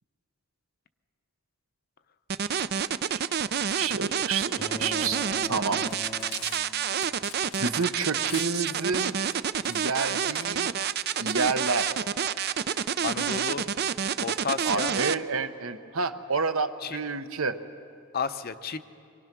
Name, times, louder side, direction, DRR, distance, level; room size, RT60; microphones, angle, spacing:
sound 1, 2.3-15.1, right 8 dB, 50° right, 0.5 m, -28 dB
voice 1, 3.8-5.2 5.5-5.8 7.6-9.2 9.7-10.7 11.2-11.9 14.7-17.6, right 4 dB, 70° right, 9 dB, 1.0 m, -29 dB
sound 2, 4.6-7.1, left 3 dB, 25° left, 0.9 m, -41 dB
Cutlery silverware, 5.7-11.4, left 9 dB, 80° left, 1.2 m, -44 dB
voice 2, 13.0-13.7 14.2-14.9 16.8-17.0 18.1-18.8, left 5 dB, 45° left, 11 dB, 0.7 m, -32 dB
25.0 x 23.0 x 6.1 m, 2.6 s
head